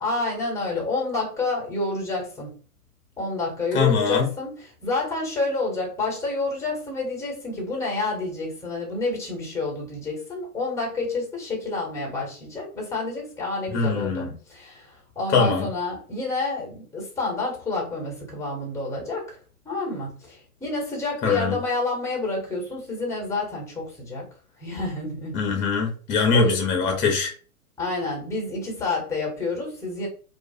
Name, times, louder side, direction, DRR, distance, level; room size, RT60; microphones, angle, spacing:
voice 1, 0.0-2.5 3.2-19.4 19.6-24.3 24.6-25.4 26.3-26.6 27.8-30.1, left 3 dB, 5° left, -1 dB, 1.1 m, -29 dB
voice 2, 3.7-4.3 13.7-14.3 15.3-15.7 21.2-21.6 25.3-27.3, left 4 dB, 25° left, 3 dB, 0.8 m, -22 dB
2.4 x 2.3 x 2.7 m, 0.39 s
hypercardioid pair, 115°, 45 cm